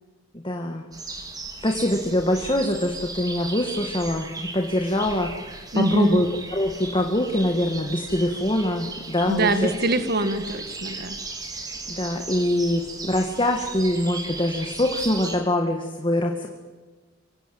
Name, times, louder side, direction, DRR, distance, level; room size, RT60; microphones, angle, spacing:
voice 1, 0.3-0.8 1.6-6.3 6.5-9.7 11.9-16.5, left 1 dB, 25° left, 2 dB, 2.1 m, -24 dB
sound 1, 0.9-15.4, right 3 dB, 20° right, 3.3 m, -37 dB
voice 2, 5.7-6.2 9.3-11.2, right 1 dB, 55° right, 10 dB, 2.0 m, -23 dB
25.5 x 24.5 x 8.0 m, 1.3 s
head